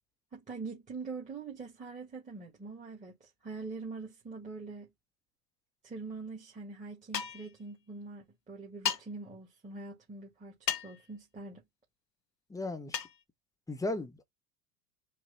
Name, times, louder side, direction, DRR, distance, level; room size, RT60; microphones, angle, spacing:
voice 1, 0.3-4.9 5.8-10.6 10.8-11.6, right 4 dB, 15° right, 1.9 m, -43 dB
sound 1, 7.1-7.5 8.9-9.0 10.7-11.0 12.9-13.2, left 9 dB, 85° left, 0.9 m, -33 dB
voice 2, 12.5-13.0 13.7-14.2, left 2 dB, 5° left, 1.0 m, -36 dB
4.9 x 3.2 x 3.3 m
figure-of-eight pair, 85°, 49 cm